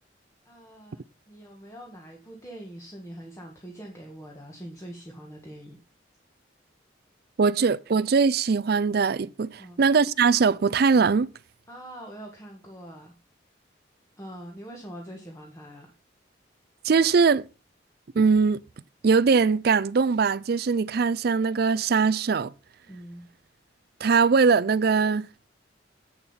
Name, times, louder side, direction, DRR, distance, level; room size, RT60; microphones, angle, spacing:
voice 1, 0.4-5.8 9.6-9.8 11.7-13.1 14.2-15.9 22.9-23.3, right 1 dB, 15° left, 1.5 m, -43 dB
voice 2, 7.4-11.3 16.8-17.5 18.2-18.6 19.0-22.5 24.0-25.3, right 5 dB, 55° right, 0.4 m, -21 dB
8.9 x 6.9 x 5.6 m
head